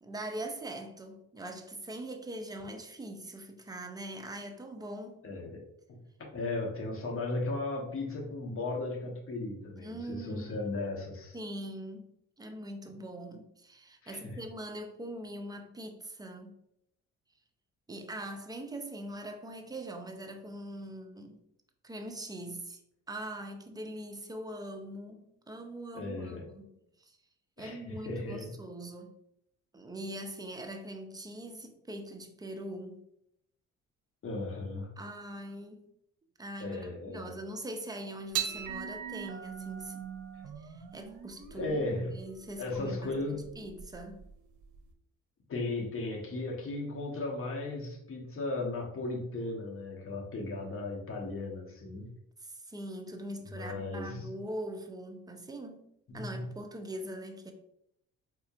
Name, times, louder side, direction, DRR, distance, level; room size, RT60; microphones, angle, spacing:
voice 1, 0.0-5.2 9.8-10.8 11.3-12.1 12.4-16.6 17.9-21.4 21.8-22.8 23.1-26.7 27.0-27.2 27.6-29.2 29.7-33.0 35.0-35.9 36.4-40.0 40.6-44.2 52.4-55.8 56.1-57.5, right 1 dB, 15° right, 4 dB, 0.5 m, -42 dB
voice 2, 5.2-6.0 6.3-11.4 14.0-14.4 25.9-26.4 27.6-28.5 34.2-34.9 36.6-37.3 41.5-42.2 42.6-43.5 45.5-52.1 53.5-54.3 56.1-56.5, left 2 dB, 45° left, 0 dB, 1.0 m, -36 dB
sound 1, 38.3-44.9, right 9 dB, 80° right, 0.6 m, -41 dB
4.2 x 2.7 x 2.4 m, 0.79 s
cardioid pair, 90°, 30 cm